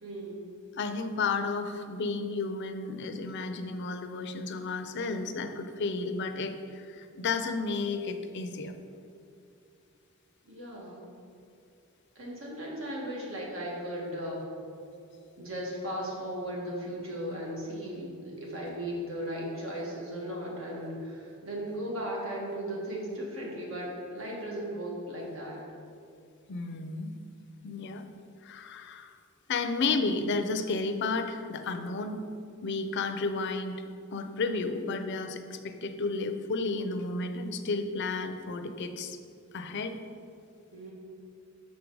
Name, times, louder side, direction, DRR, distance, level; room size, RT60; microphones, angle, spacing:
voice 1, 0.0-0.4 10.4-11.0 12.1-14.5 15.4-25.6 40.7-40.9, equal, 65° right, -3 dB, 1.6 m, -36 dB
voice 2, 0.8-8.7 26.5-27.2 27.6-28.1 28.4-29.1 29.5-32.2 32.6-33.8 34.1-39.2 39.5-40.0, left 3 dB, 55° left, 8 dB, 0.5 m, -32 dB
6.5 x 5.2 x 4.7 m, 2.5 s
head